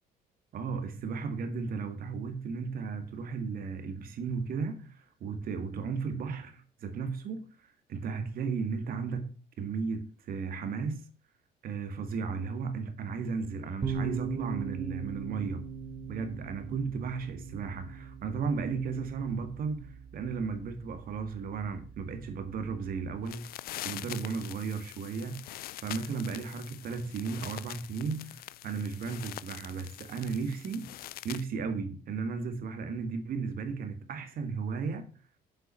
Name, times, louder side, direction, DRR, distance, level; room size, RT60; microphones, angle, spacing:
voice 1, 0.5-11.0 11.6-15.6 16.1-23.5 23.8-30.9 31.2-35.1, right 5 dB, 60° right, 1.9 m, -35 dB
sound 1, 13.8-23.2, right 5 dB, 30° right, 1.2 m, -40 dB
sound 2, 23.2-31.5, left 14 dB, 65° left, 0.4 m, -44 dB
7.7 x 5.7 x 7.5 m
cardioid pair, 110°, 17 cm